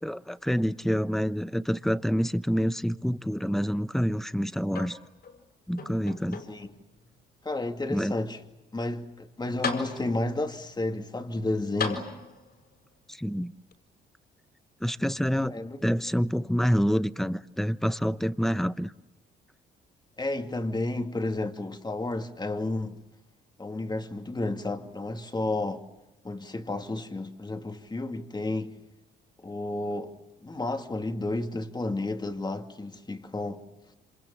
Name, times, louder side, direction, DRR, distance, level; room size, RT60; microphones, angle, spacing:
voice 1, 0.0-5.0 5.7-6.4 7.9-8.1 13.1-13.5 14.8-15.5 15.8-18.9, equal, ahead, 0.9 m, -27 dB
sound 1, 4.7-5.4 5.8-6.8 7.5-7.6 9.2-9.3 9.6-10.4 11.8-12.6 13.7-13.8, left 5 dB, 55° left, 6.4 m, -36 dB
voice 2, 7.4-8.4 8.7-12.1 15.5-15.8 20.2-23.0 23.6-25.8 26.2-28.7 29.4-30.1 30.4-33.6, left 2 dB, 20° left, 2.6 m, -31 dB
28.5 x 27.0 x 7.4 m
cardioid pair, 90°, 20 cm